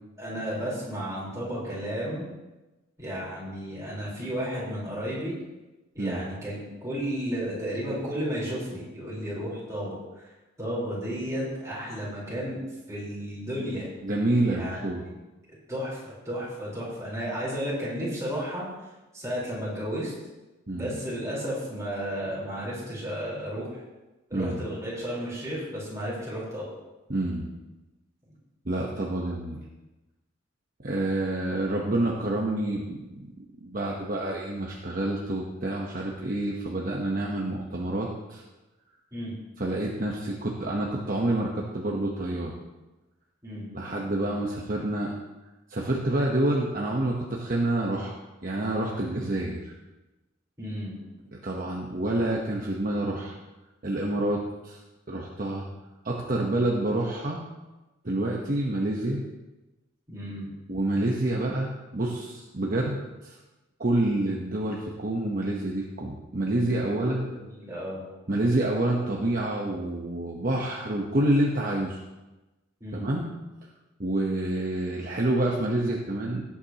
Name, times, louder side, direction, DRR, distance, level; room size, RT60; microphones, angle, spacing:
voice 1, 0.2-2.3 3.0-5.3 5.9-10.0 10.6-12.6 12.9-13.9 14.5-15.1 15.7-18.6 19.1-20.1 20.7-23.8 24.3-26.6 39.1-39.3 43.4-43.7 50.6-51.0 60.1-60.5 66.7-68.0 72.8-73.1, equal, 15° right, -7 dB, 4.2 m, -33 dB
voice 2, 14.0-15.0 20.7-20.9 24.3-24.6 27.1-27.5 28.6-29.6 30.8-33.3 33.6-38.4 39.6-42.5 43.7-45.1 45.7-49.7 51.4-53.4 53.8-54.8 55.1-55.6 56.0-57.4 58.0-59.2 60.7-63.4 63.8-67.3 68.3-72.0 72.9-73.3 74.0-76.4, right 1 dB, 40° right, -2 dB, 1.0 m, -28 dB
17.5 x 8.5 x 3.0 m, 1.1 s
head